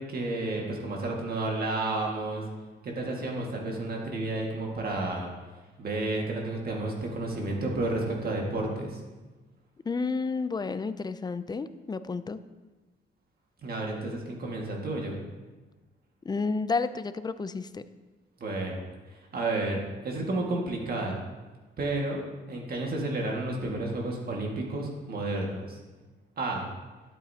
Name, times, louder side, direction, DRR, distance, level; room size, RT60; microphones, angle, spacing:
voice 1, 0.0-2.4 2.8-5.3 5.8-9.0 13.6-15.2 18.4-21.2 21.8-25.8 26.4-26.7, right 2 dB, 50° right, -1 dB, 1.8 m, -31 dB
voice 2, 9.9-12.4 16.2-17.8, left 4 dB, 20° left, 13 dB, 0.4 m, -31 dB
12.0 x 8.2 x 2.8 m, 1.2 s
cardioid pair, 90°, 20 cm